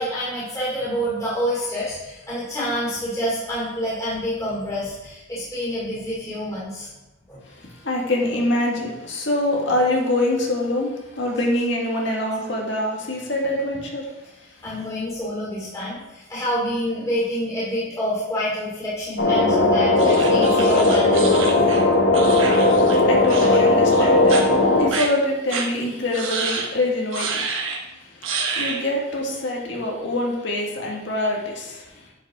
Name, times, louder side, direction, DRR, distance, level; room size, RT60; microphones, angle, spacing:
voice 1, 0.0-6.9 7.3-7.4 14.6-21.7, equal, 15° left, -9 dB, 2.7 m, -27 dB
voice 2, 7.8-14.1 22.4-22.7 23.1-24.4 24.8-27.4 28.6-31.8, left 1 dB, 65° left, -1 dB, 1.8 m, -24 dB
sound 1, 19.2-24.9, left 2 dB, 85° left, 1.6 m, -17 dB
sound 2, 20.0-23.0 23.3-23.6 23.9-24.4 24.9-25.1 25.5-25.7 26.1-26.7 27.1-27.8 28.2-28.8, right 4 dB, 85° right, 1.3 m, -28 dB
9.7 x 5.3 x 3.6 m, 1.0 s
head